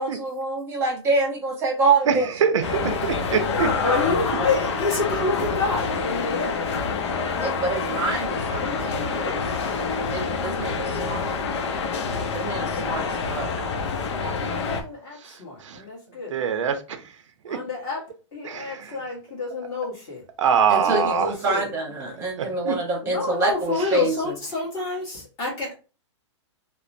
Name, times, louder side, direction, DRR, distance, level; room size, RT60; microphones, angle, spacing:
voice 1, 0.0-2.5 2.8-2.9 3.6-3.8 7.4-9.3 10.1-11.3 12.3-13.5 20.7-24.3, right 3 dB, 15° right, 0.9 m, -26 dB
voice 2, 2.4-3.7 14.4-14.5 15.2-15.3 15.6-15.8 16.3-17.0 17.4-17.6 18.5-18.9 20.4-21.3 22.1-22.3 22.6-22.8, right 7 dB, 85° right, 0.6 m, -23 dB
sound 1, 2.6-14.8, left 5 dB, 70° left, 0.6 m, -27 dB
Harp, 2.6-13.8, left 1 dB, 50° left, 1.5 m, -39 dB
voice 3, 3.2-6.7 8.5-9.8 14.3-16.3 17.5-18.0 18.3-20.2 20.7-21.7 23.0-25.7, left 3 dB, 25° left, 1.3 m, -29 dB
2.9 x 2.0 x 2.5 m
hypercardioid pair, 150°, 15 cm